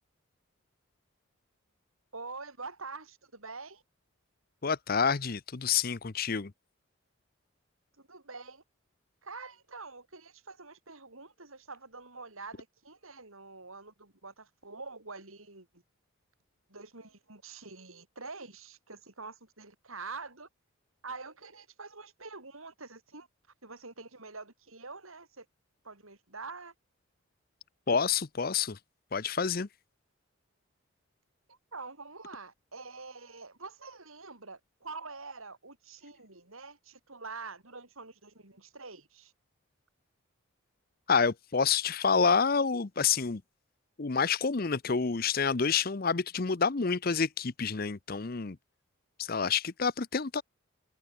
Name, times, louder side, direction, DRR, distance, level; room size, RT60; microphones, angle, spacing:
voice 1, 2.1-3.8 8.0-8.6 9.2-15.8 16.7-20.5 21.0-23.3 23.6-25.5 25.8-26.7 31.5-39.3, right 4 dB, 80° right, 6.3 m, -46 dB
voice 2, 4.6-6.5 27.9-28.8 29.1-29.7 41.1-43.4 44.0-48.6 49.2-50.4, left 5 dB, 45° left, 0.7 m, -28 dB
head